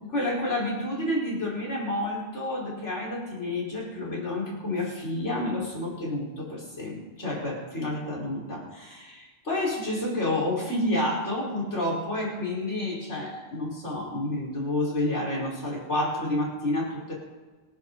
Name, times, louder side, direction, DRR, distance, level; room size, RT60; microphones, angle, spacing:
voice 1, 0.1-17.1, left 1 dB, 75° left, -5 dB, 5.3 m, -29 dB
26.0 x 11.0 x 4.1 m, 1.3 s
omnidirectional pair, 1.2 m